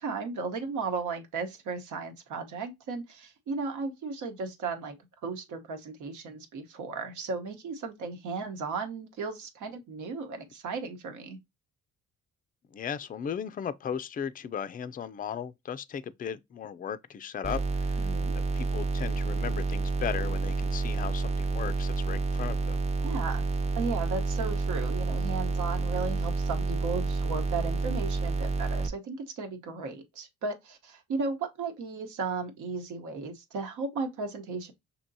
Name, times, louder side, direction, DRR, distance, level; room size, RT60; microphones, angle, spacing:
voice 1, 0.0-5.0 5.2-11.4 18.0-18.3 23.0-23.4 23.7-34.7, right 4 dB, 75° right, 1.1 m, -35 dB
voice 2, 12.7-18.1 18.3-22.8, left 8 dB, 30° left, 0.4 m, -36 dB
sound 1, 17.4-28.9, right 3 dB, 20° right, 0.6 m, -29 dB
6.0 x 2.9 x 2.7 m
cardioid pair, 90°, 30 cm